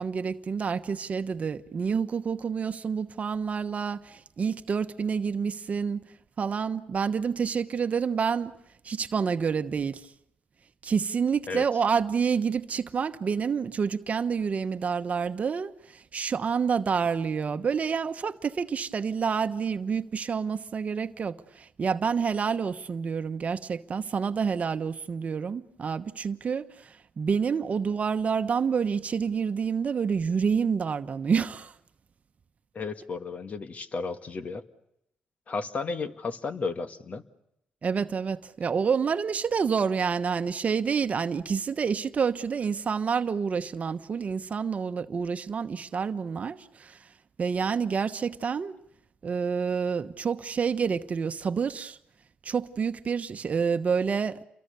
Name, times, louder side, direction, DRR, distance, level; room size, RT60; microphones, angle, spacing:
voice 1, 0.0-6.0 6.4-8.5 8.8-10.1 10.8-31.7 37.8-47.1 47.4-48.8 49.2-52.0 52.4-54.4, right 6 dB, 50° right, 1.1 m, -28 dB
voice 2, 32.8-34.6 35.5-37.2, left 4 dB, 50° left, 1.8 m, -33 dB
29.5 x 23.0 x 6.9 m
cardioid pair, 70°, 3 cm